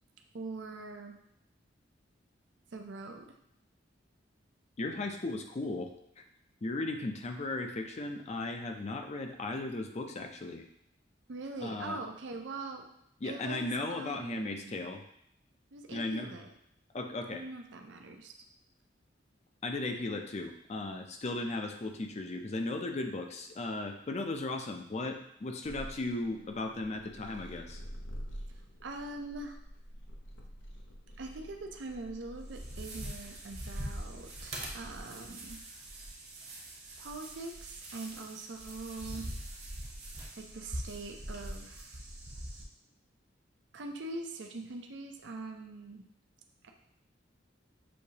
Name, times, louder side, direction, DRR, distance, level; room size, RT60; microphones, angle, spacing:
voice 1, 0.3-1.2 2.7-3.3 11.3-12.9 13.2-14.8 15.7-16.5 17.3-18.3 28.8-29.6 31.2-35.6 37.0-39.3 40.4-42.0 43.7-46.0 46.6-46.7, right 3 dB, 70° right, 3 dB, 0.5 m, -43 dB
voice 2, 4.8-6.2 6.6-10.6 11.6-12.0 13.2-15.0 15.9-16.3 16.9-17.4 19.6-27.8, left 2 dB, 35° left, 5 dB, 0.4 m, -36 dB
sound 1, 25.6-34.5, equal, 85° left, 0.7 m, -47 dB
sound 2, 32.4-42.6, right 1 dB, 35° right, 0.9 m, -43 dB
6.4 x 2.7 x 2.8 m, 0.73 s
head